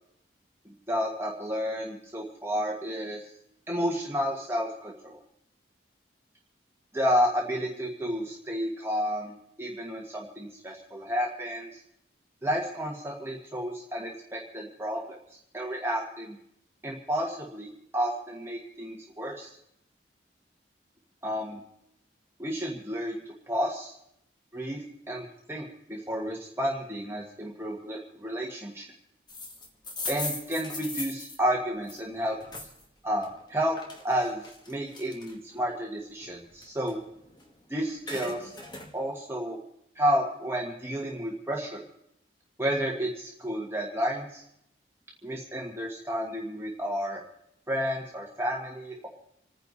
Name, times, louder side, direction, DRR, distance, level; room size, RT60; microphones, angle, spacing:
voice 1, 0.9-3.2 3.7-5.2 6.9-11.8 12.4-15.2 15.5-16.3 16.8-19.5 21.2-21.6 22.4-23.2 23.5-23.9 24.5-28.8 30.1-32.4 33.0-33.8 34.0-37.0 37.7-38.5 38.9-39.6 39.9-41.8 42.6-44.4 45.2-47.2 47.7-49.1, equal, 15° right, -1 dB, 1.6 m, -31 dB
sound 1, 29.3-32.8 33.2-35.6 36.0-37.6 37.8-38.9, left 2 dB, 25° left, 2.2 m, -39 dB
28.0 x 10.0 x 4.2 m, 0.76 s
head